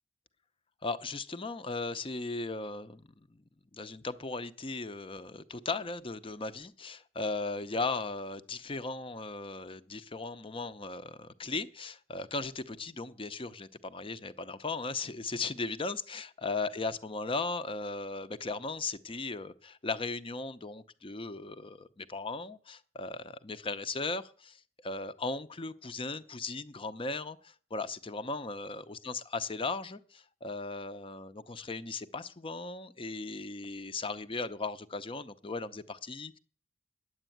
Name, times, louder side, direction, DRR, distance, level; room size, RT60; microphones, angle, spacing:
voice 1, 0.8-3.4 3.7-36.4, left 3 dB, 30° left, 0.7 m, -37 dB
10.0 x 8.1 x 9.3 m
head